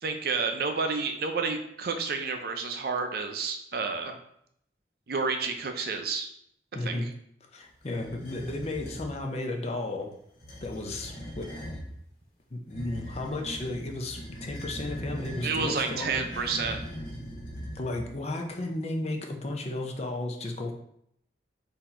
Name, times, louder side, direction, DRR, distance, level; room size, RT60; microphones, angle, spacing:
voice 1, 0.0-4.2 5.1-6.3 6.8-7.0 15.4-16.8, right 4 dB, 60° right, 5 dB, 0.5 m, -30 dB
voice 2, 6.7-7.1 7.5-10.1 10.6-11.5 12.5-16.5 17.7-20.7, left 2 dB, 35° left, 3 dB, 0.6 m, -34 dB
sound 1, 7.8-9.1 10.3-11.9 12.7-18.2, equal, 55° left, 1.5 m, -40 dB
4.2 x 2.8 x 4.3 m, 0.72 s
head